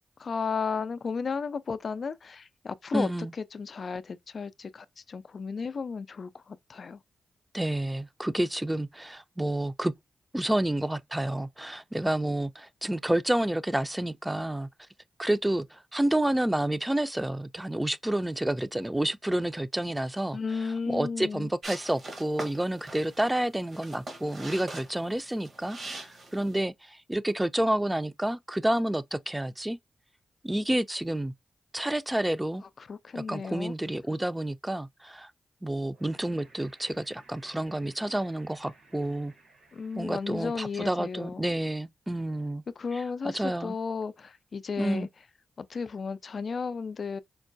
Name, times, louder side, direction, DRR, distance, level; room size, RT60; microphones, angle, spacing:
voice 1, 0.2-3.1 3.4-7.0 20.3-21.5 32.9-33.7 39.7-41.5 42.8-45.1 45.6-47.2, left 5 dB, 65° left, 0.4 m, -34 dB
voice 2, 2.9-3.3 7.5-9.9 10.3-14.7 15.2-20.4 20.9-29.8 30.4-31.3 31.7-32.6 33.1-35.3 35.6-39.3 40.0-42.6 42.9-43.7 44.8-45.1, right 1 dB, 15° right, 0.4 m, -29 dB
sound 1, 21.6-26.6, right 2 dB, 60° right, 1.1 m, -42 dB
sound 2, 35.9-41.3, right 3 dB, 80° right, 1.5 m, -59 dB
4.5 x 2.1 x 2.6 m
supercardioid pair, 40°, 0 cm